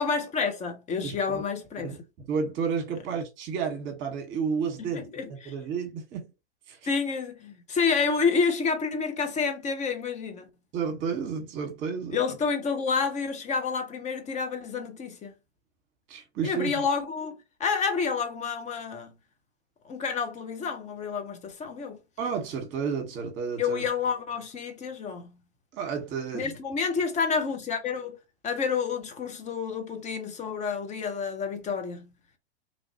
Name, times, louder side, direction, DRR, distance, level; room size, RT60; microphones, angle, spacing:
voice 1, 0.0-1.9 4.8-5.5 6.8-10.5 12.1-15.3 16.4-19.1 19.8-22.0 23.6-25.4 26.3-28.2 28.4-32.1, left 5 dB, 20° left, 0.8 m, -29 dB
voice 2, 1.0-1.4 1.8-2.0 2.3-5.0 5.3-6.3 6.7-6.8 10.7-12.2 16.1-16.7 22.2-23.8 25.7-26.5, right 6 dB, 35° right, 1.3 m, -31 dB
3.1 x 2.6 x 2.8 m
figure-of-eight pair, 100°, 33 cm